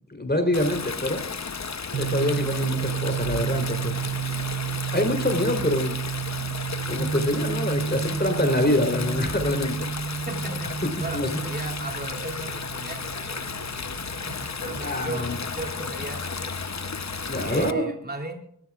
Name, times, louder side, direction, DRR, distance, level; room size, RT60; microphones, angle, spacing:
voice 1, 0.1-1.2 1.9-4.0 4.9-6.0 6.9-9.9 10.4-10.5 10.8-11.3 14.8-15.4 17.3-17.9, left 1 dB, 30° left, 6 dB, 3.6 m, -25 dB
Stream, 0.5-17.7, left 5 dB, 55° left, 0.9 m, -33 dB
sound 1, 1.9-15.6, right 8 dB, 60° right, 0.8 m, -32 dB
voice 2, 10.3-10.7 11.0-13.4 14.3-16.6 17.4-18.4, right 2 dB, 30° right, 2 dB, 3.0 m, -36 dB
25.0 x 14.0 x 2.4 m, 0.72 s
wide cardioid pair, 55°, 33 cm